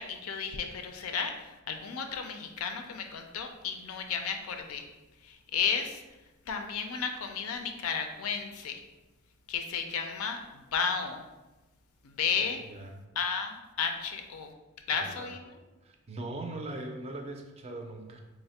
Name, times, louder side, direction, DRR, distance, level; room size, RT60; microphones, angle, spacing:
voice 1, 0.0-4.9 5.2-6.0 6.5-8.8 9.5-11.2 12.0-12.6 13.2-14.5 14.9-15.5, left 6 dB, 85° left, 5 dB, 0.4 m, -33 dB
voice 2, 14.9-15.3 15.8-18.2, right 2 dB, 30° right, 3 dB, 0.4 m, -40 dB
3.2 x 2.1 x 4.1 m, 1.1 s
head